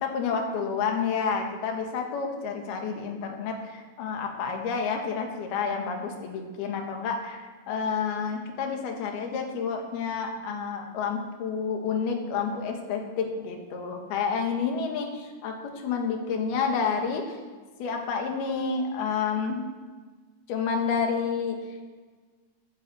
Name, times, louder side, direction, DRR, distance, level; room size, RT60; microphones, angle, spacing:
voice 1, 0.0-17.4 17.8-19.6 20.5-21.6, left 5 dB, 80° left, 3 dB, 3.6 m, -29 dB
12.0 x 10.0 x 7.8 m, 1.4 s
omnidirectional pair, 4.4 m